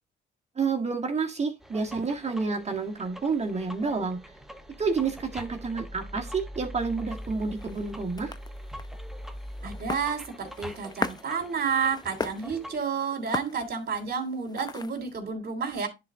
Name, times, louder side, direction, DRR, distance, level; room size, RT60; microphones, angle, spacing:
voice 1, 0.6-4.2 4.8-8.3, right 4 dB, 35° right, 1.8 m, -29 dB
sound 1, 1.6-12.8, equal, ahead, 1.1 m, -43 dB
sound 2, 7.1-15.2, left 4 dB, 20° left, 0.6 m, -39 dB
voice 2, 9.6-15.9, right 6 dB, 50° right, 2.9 m, -30 dB
10.5 x 4.0 x 3.7 m
cardioid pair, 90°, 20 cm